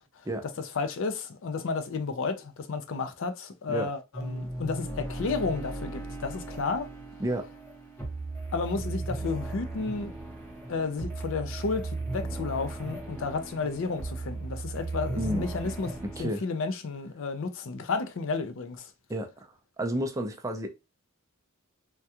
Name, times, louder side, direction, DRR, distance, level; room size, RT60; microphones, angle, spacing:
voice 1, 0.6-6.9 8.5-10.1 10.7-18.9, left 4 dB, 60° left, 0.5 m, -32 dB
sound 1, 4.1-16.2, right 2 dB, 10° left, 0.8 m, -37 dB
voice 2, 15.2-15.5 16.2-16.4 19.1-19.5 19.8-20.7, right 1 dB, 15° right, 0.4 m, -30 dB
3.5 x 2.2 x 2.8 m
head